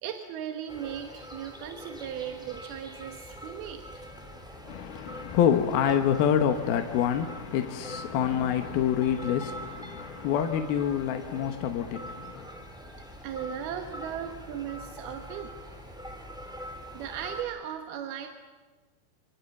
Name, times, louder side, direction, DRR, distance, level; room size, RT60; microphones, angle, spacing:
voice 1, 0.0-3.8 13.2-16.0 16.9-18.3, right 9 dB, 85° right, 3.2 m, -37 dB
sound 1, 0.7-17.4, equal, ahead, 3.8 m, -43 dB
voice 2, 4.6-12.5, left 9 dB, 80° left, 3.1 m, -27 dB
28.0 x 26.0 x 7.2 m
omnidirectional pair, 4.3 m